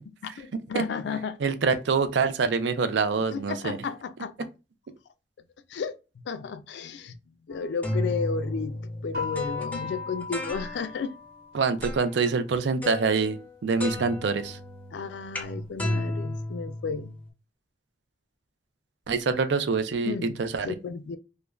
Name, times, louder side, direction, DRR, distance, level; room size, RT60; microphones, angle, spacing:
voice 1, 0.2-1.4 3.3-4.5 5.7-6.0 6.3-7.2 7.5-11.1 14.9-17.2 20.0-20.4 20.6-21.2, left 5 dB, 75° left, 0.3 m, -33 dB
voice 2, 1.4-3.8 11.5-14.6 19.1-20.7, right 4 dB, 75° right, 0.4 m, -25 dB
sound 1, 7.5-11.1 11.8-12.3 12.8-13.5 13.8-17.3, left 1 dB, 10° left, 0.5 m, -34 dB
sound 2, 9.1-11.9, left 4 dB, 60° right, 0.9 m, -37 dB
2.4 x 2.2 x 3.0 m
head